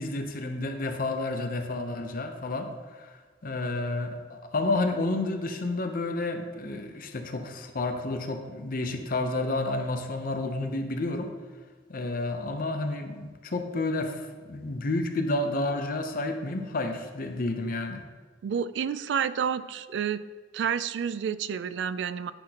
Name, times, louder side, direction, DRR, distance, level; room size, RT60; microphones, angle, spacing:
voice 1, 0.0-11.3 11.9-18.0, left 2 dB, 50° left, 5 dB, 0.7 m, -30 dB
voice 2, 18.4-20.2 20.5-22.3, right 7 dB, 70° right, 15 dB, 0.3 m, -29 dB
9.8 x 5.9 x 2.9 m, 1.5 s
head